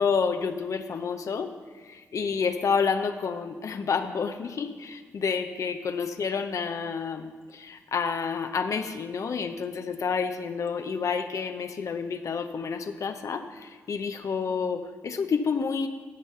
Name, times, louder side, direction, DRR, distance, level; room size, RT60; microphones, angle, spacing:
voice 1, 0.0-1.5 1.8-15.9, left 5 dB, 60° left, 7 dB, 0.7 m, -29 dB
10.5 x 5.4 x 6.7 m, 1.5 s
supercardioid pair, 50°, 6 cm